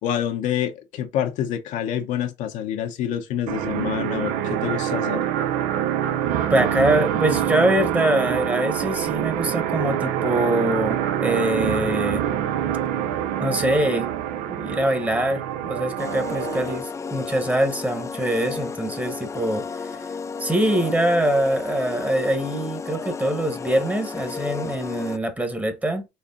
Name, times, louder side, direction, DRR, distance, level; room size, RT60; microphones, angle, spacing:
voice 1, 0.0-5.2, left 10 dB, 75° left, 0.8 m, -27 dB
sound 1, 3.5-16.8, right 10 dB, 90° right, 0.6 m, -25 dB
voice 2, 6.5-12.3 13.4-14.1 14.5-19.7 20.4-26.1, right 1 dB, 10° right, 1.0 m, -23 dB
sound 2, 16.0-25.2, left 5 dB, 20° left, 0.4 m, -33 dB
4.3 x 3.2 x 3.8 m
cardioid pair, 100°, 13 cm